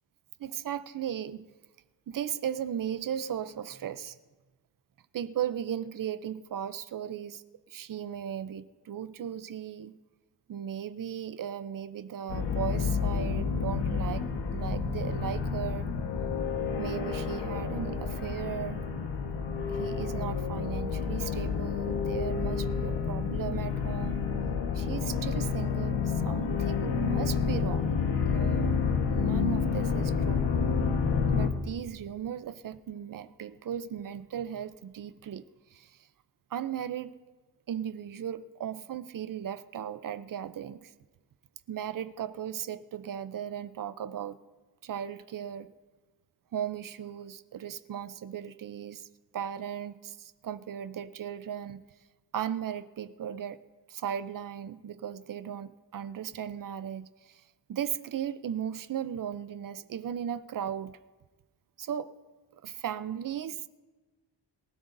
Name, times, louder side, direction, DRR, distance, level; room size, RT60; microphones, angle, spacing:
voice 1, 0.4-1.5 2.1-4.1 5.1-7.4 7.7-10.0 10.5-15.9 16.8-18.8 19.7-24.2 24.7-27.9 28.1-28.7 29.1-30.4 31.3-35.4 35.7-35.9 36.5-37.1 37.7-40.9 41.7-44.4 44.8-45.7 46.5-49.1 49.3-51.8 52.3-53.6 53.9-57.1 57.7-61.0 61.8-62.1 62.6-63.6, right 9 dB, 50° right, 13 dB, 0.6 m, -36 dB
sound 1, 12.3-31.5, left 5 dB, 80° left, 1.4 m, -29 dB
23.0 x 16.5 x 2.6 m, 1.3 s
wide cardioid pair, 170°, 42 cm